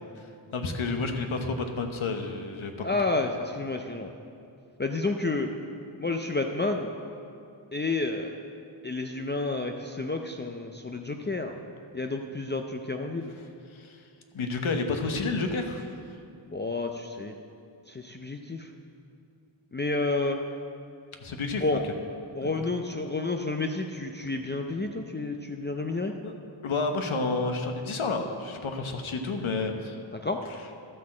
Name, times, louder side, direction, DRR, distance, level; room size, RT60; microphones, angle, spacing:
voice 1, 0.5-2.9 13.7-14.0 14.3-15.9 21.2-21.6 22.4-22.5 26.2-26.3 26.6-30.0, left 3 dB, 80° left, 5 dB, 1.1 m, -30 dB
voice 2, 2.8-4.1 4.8-5.5 6.0-6.9 7.7-8.4 8.8-11.5 11.9-13.3 16.5-17.4 17.9-18.7 19.7-20.4 21.6-21.8 22.3-26.1 30.2-30.4, left 3 dB, 25° left, 4 dB, 0.5 m, -30 dB
12.5 x 5.9 x 7.4 m, 2.5 s
wide cardioid pair, 95°, 48 cm